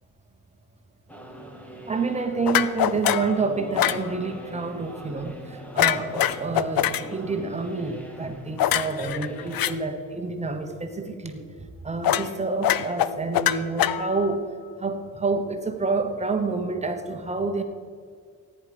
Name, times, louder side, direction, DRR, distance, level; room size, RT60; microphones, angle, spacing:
sound 1, 1.1-9.7, equal, 5° left, 1.2 m, -42 dB
voice 1, 1.9-11.4 11.8-14.5 14.8-17.6, right 3 dB, 20° right, 6 dB, 1.0 m, -28 dB
sound 2, 2.4-3.3 3.8-4.0 5.8-7.0 8.6-9.7 12.0-12.3 12.6-14.3, left 12 dB, 85° left, 0.6 m, -23 dB
14.5 x 9.8 x 5.2 m, 2.1 s
wide cardioid pair, 180°, 34 cm